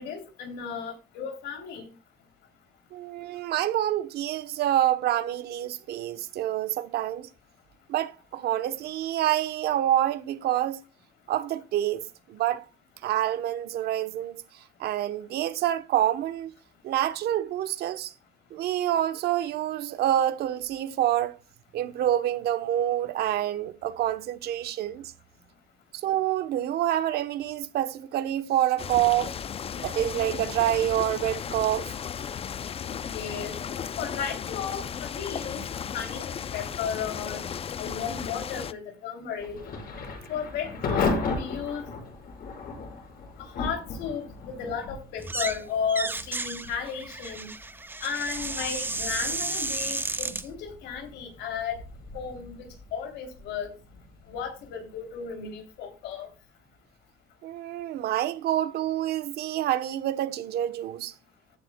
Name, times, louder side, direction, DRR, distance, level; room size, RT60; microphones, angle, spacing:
voice 1, 0.0-1.9 33.0-35.6 35.9-37.4 37.8-39.6 40.3-41.8 43.4-47.5 48.0-51.8 52.1-53.7 54.3-56.3, left 7 dB, 85° left, 3.2 m, -34 dB
voice 2, 2.9-7.3 7.9-10.8 11.3-12.7 13.0-14.4 14.8-16.5 16.8-18.1 18.5-21.4 21.7-25.1 25.9-29.3 29.8-31.9 57.4-61.1, right 12 dB, 70° right, 1.0 m, -27 dB
sound 1, 28.8-38.7, left 8 dB, 35° left, 0.5 m, -35 dB
Thunder / Rain, 39.4-56.1, left 3 dB, 65° left, 6.5 m, -37 dB
sound 2, 45.2-45.6 45.9-50.4, right 3 dB, 10° right, 0.6 m, -32 dB
14.0 x 10.5 x 2.3 m
cardioid pair, 110°, 17 cm